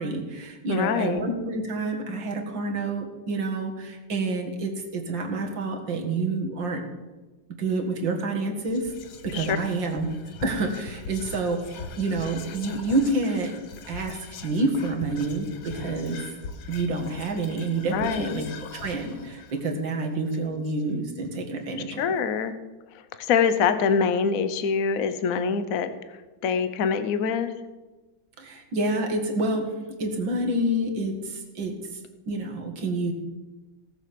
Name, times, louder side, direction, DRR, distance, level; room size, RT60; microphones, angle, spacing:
voice 1, 0.0-6.8 7.6-8.9 9.2-10.1 10.4-13.5 13.9-16.2 16.7-18.5 18.7-22.0 28.4-29.7 30.0-31.8 32.3-33.1, right 2 dB, 65° right, 3 dB, 2.5 m, -28 dB
voice 2, 0.7-1.2 9.3-9.6 17.9-18.4 22.0-22.5 23.2-25.9 26.4-27.5, left 6 dB, 55° left, 11 dB, 1.1 m, -24 dB
Whispering, 8.6-21.1, left 5 dB, 75° left, 1.9 m, -41 dB
17.0 x 7.7 x 6.9 m, 1.2 s
omnidirectional pair, 2.3 m